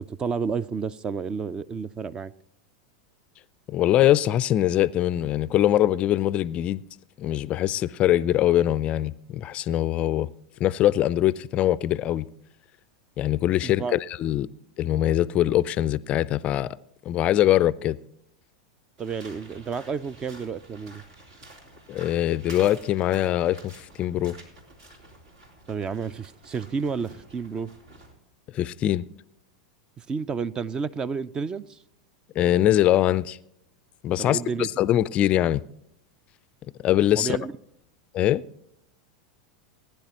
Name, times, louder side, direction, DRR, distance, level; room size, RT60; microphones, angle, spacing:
voice 1, 0.0-2.3 13.6-14.0 19.0-21.0 25.7-27.7 30.0-31.8 34.2-34.7 37.2-37.5, right 5 dB, 25° right, 0.5 m, -31 dB
voice 2, 3.7-6.8 7.2-10.3 10.6-12.3 13.2-14.5 14.8-16.8 17.1-18.0 21.9-24.4 28.5-29.0 32.4-33.4 34.0-35.6 36.8-37.4 38.1-38.4, left 13 dB, 40° left, 0.4 m, -22 dB
sound 1, 19.0-28.1, right 1 dB, 70° right, 3.3 m, -49 dB
19.5 x 10.5 x 2.9 m
hypercardioid pair, 95°, 3 cm